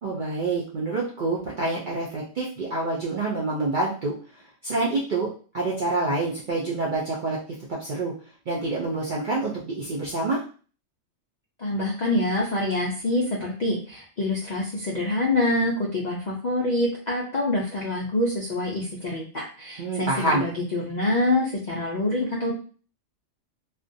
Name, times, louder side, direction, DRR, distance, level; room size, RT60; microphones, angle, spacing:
voice 1, 0.0-4.1 4.6-5.3 5.5-7.4 7.7-8.1 8.5-10.4 19.8-20.4, right 2 dB, 65° right, -5 dB, 0.5 m, -27 dB
voice 2, 11.6-22.5, left 2 dB, 90° left, -4 dB, 0.4 m, -26 dB
2.4 x 2.1 x 2.6 m, 0.39 s
omnidirectional pair, 1.4 m